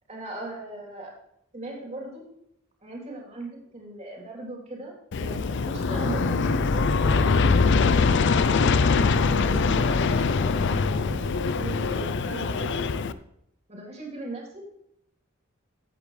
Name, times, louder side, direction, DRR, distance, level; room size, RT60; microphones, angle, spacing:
voice 1, 0.1-1.1 1.5-2.2 2.8-7.1 7.6-8.2 8.9-12.8 13.7-14.6, right 2 dB, 35° right, -1 dB, 3.3 m, -39 dB
Aircraft, 5.1-13.1, left 4 dB, 60° left, 0.5 m, -23 dB
15.0 x 8.3 x 3.3 m, 0.77 s
head